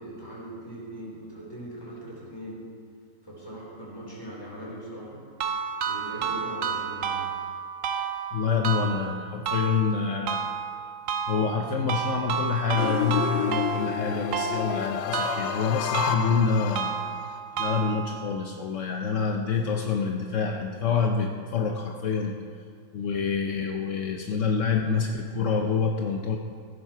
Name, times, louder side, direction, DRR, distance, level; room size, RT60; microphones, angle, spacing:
voice 1, 0.0-2.6 3.2-5.2 5.9-7.2, right 1 dB, 10° left, -5 dB, 4.3 m, -40 dB
sound 1, 5.4-18.4, right 6 dB, 60° right, 0.8 m, -31 dB
voice 2, 8.3-10.5 11.3-17.0 17.5-22.4 22.9-26.4, left 5 dB, 60° left, 3 dB, 0.8 m, -27 dB
sound 2, 12.8-17.4, left 11 dB, 75° left, 1.2 m, -30 dB
16.0 x 11.5 x 4.6 m, 2.3 s
omnidirectional pair, 2.1 m